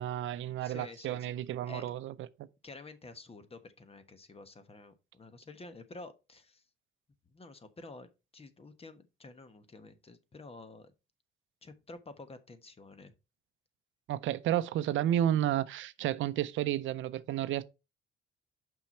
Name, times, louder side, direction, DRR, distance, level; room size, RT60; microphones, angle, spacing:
voice 1, 0.0-2.1 14.1-17.6, right 11 dB, 75° right, 0.5 m, -31 dB
voice 2, 0.6-1.3 1.7-1.8 2.6-6.6 7.3-10.9 11.6-13.1, left 3 dB, 30° left, 1.1 m, -50 dB
5.8 x 5.7 x 4.4 m
cardioid pair, 90°, 20 cm